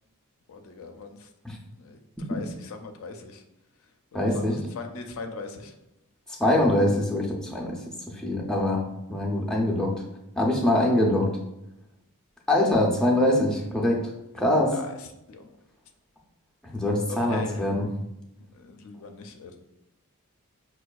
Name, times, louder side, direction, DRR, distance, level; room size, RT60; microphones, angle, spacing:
voice 1, 0.5-1.3 1.7-3.4 4.1-5.7 14.6-15.5 17.1-17.7 18.5-19.6, left 4 dB, 65° left, 5 dB, 0.4 m, -40 dB
voice 2, 4.1-4.6 6.3-7.8 8.1-8.8 9.1-9.9 10.4-11.3 12.5-14.1 14.3-14.7 16.6-17.8, left 1 dB, 5° left, -2 dB, 0.4 m, -23 dB
5.1 x 2.2 x 2.3 m, 0.90 s
head